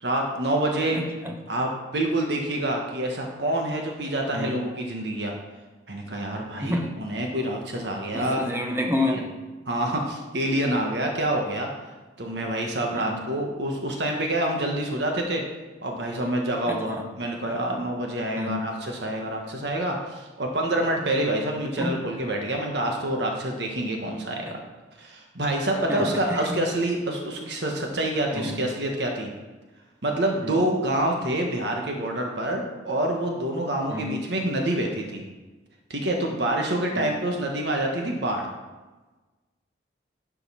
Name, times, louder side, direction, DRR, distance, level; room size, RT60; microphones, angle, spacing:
voice 1, 0.0-1.0 1.5-5.3 5.9-8.4 9.0-9.2 9.6-11.7 12.2-15.4 15.8-24.5 25.0-29.3 30.0-35.2 35.9-38.5, right 1 dB, 70° right, 1 dB, 1.4 m, -27 dB
voice 2, 0.9-1.3 4.3-4.6 6.6-6.9 8.1-9.3 13.1-13.2 16.7-17.1 18.4-18.6 21.8-22.0 24.4-24.6 25.9-26.6 28.3-28.6 30.4-30.6 33.9-34.2 36.9-37.1, left 1 dB, 15° right, 2 dB, 1.0 m, -29 dB
11.0 x 5.5 x 5.6 m, 1.2 s
head